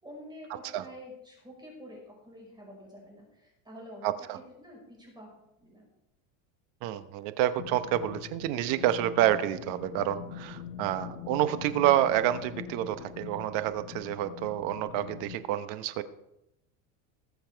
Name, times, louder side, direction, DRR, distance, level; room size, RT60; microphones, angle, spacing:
voice 1, 0.0-5.3 5.6-5.9, equal, 10° right, -2 dB, 5.0 m, -48 dB
voice 2, 4.0-4.4 6.8-16.0, right 12 dB, 55° right, 12 dB, 1.0 m, -28 dB
sound 1, 7.6-15.4, left 8 dB, 70° left, 1.2 m, -43 dB
20.0 x 7.2 x 4.6 m, 0.85 s
supercardioid pair, 145°, 40 cm